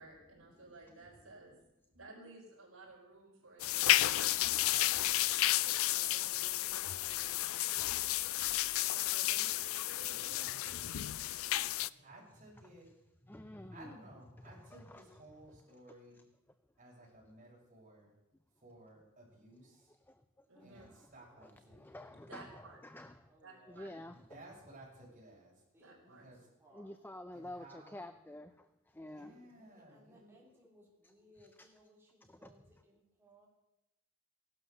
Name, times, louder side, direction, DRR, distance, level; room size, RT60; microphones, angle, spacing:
voice 1, 0.0-1.6 1.9-4.9 5.8-7.4 8.9-11.0 20.5-20.8 22.1-22.8 23.4-23.9 25.8-26.2 29.3-29.4, right 2 dB, 80° right, -1 dB, 4.7 m, -56 dB
sound 1, 3.6-11.9, left 15 dB, 75° left, 0.4 m, -32 dB
voice 2, 10.1-11.2 12.0-12.9 13.7-16.2 16.8-18.2 18.5-20.0 20.6-22.1 24.0-26.5 27.3-28.1 29.1-30.4, right 1 dB, 35° right, -4 dB, 6.9 m, -57 dB
voice 3, 11.7-12.1 23.3-23.9 25.7-26.3 26.6-26.9 29.5-33.5, right 1 dB, 10° right, -4 dB, 3.6 m, -65 dB
voice 4, 13.3-13.9 14.4-15.0 20.1-21.1 21.4-23.2 23.7-24.3 26.7-29.3 31.0-31.7 32.2-32.8, left 1 dB, 10° left, 10 dB, 0.5 m, -50 dB
16.5 x 12.0 x 6.7 m, 0.90 s
head